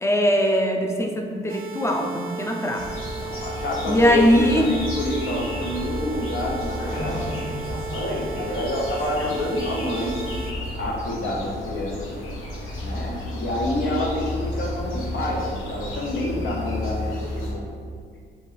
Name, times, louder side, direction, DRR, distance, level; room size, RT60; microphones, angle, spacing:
voice 1, 0.0-3.0 3.9-4.7 9.2-9.4, equal, 15° left, 2 dB, 0.5 m, -21 dB
sound 1, 1.5-10.5, right 5 dB, 45° right, 0.5 m, -36 dB
sound 2, 2.8-17.5, left 1 dB, 85° left, 1.1 m, -32 dB
voice 2, 3.2-7.3 7.7-10.2 10.8-12.2 12.8-17.6, left 1 dB, 60° left, -2 dB, 1.0 m, -28 dB
sound 3, 5.5-9.8, left 1 dB, 30° left, 1.2 m, -38 dB
4.2 x 3.0 x 3.4 m, 2.1 s
cardioid pair, 90°, 20 cm